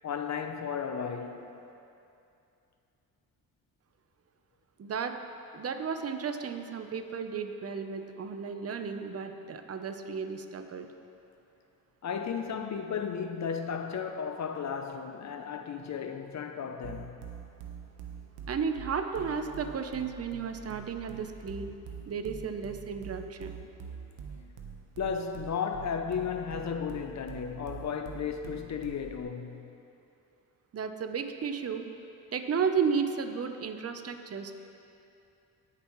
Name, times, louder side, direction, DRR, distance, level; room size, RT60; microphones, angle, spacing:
voice 1, 0.0-1.6 12.0-17.2 25.0-29.7, left 6 dB, 50° left, 0.7 m, -34 dB
voice 2, 4.8-5.1 5.5-10.9 18.5-21.7 22.1-23.5 30.7-31.9 32.3-34.5, right 6 dB, 40° right, 0.8 m, -33 dB
sound 1, 16.8-29.2, right 7 dB, 90° right, 1.1 m, -44 dB
18.5 x 6.9 x 3.2 m
cardioid pair, 80°, 36 cm